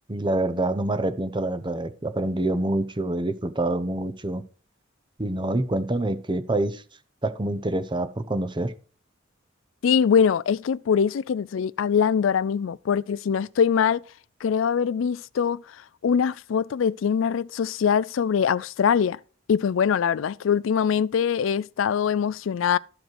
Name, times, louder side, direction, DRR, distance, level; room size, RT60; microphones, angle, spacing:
voice 1, 0.1-4.4 5.2-6.8 7.2-8.7, right 2 dB, 25° right, 0.8 m, -26 dB
voice 2, 9.8-14.0 14.4-15.6 16.0-19.2 19.5-22.8, left 7 dB, 70° left, 0.4 m, -23 dB
13.5 x 5.1 x 4.7 m
head